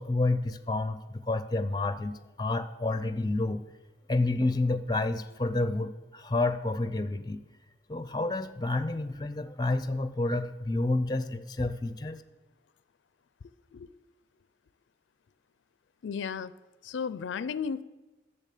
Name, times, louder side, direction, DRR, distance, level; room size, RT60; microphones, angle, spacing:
voice 1, 0.0-3.6 4.1-7.4 7.9-12.2, left 2 dB, 20° left, 12 dB, 0.5 m, -29 dB
voice 2, 16.0-16.5 16.8-17.8, left 6 dB, 90° left, 17 dB, 0.4 m, -34 dB
10.5 x 7.0 x 8.3 m, 1.2 s
head